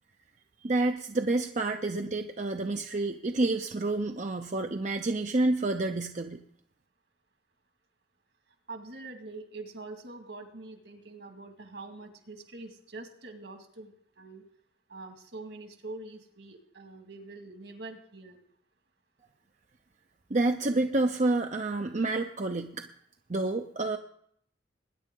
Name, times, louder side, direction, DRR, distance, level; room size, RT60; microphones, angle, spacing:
voice 1, 0.6-6.4 20.3-22.8 23.3-24.0, right 2 dB, 40° right, 5 dB, 0.6 m, -29 dB
voice 2, 8.7-14.4 14.9-18.4, right 2 dB, 70° right, 5 dB, 2.1 m, -44 dB
20.5 x 10.0 x 3.8 m, 0.68 s
head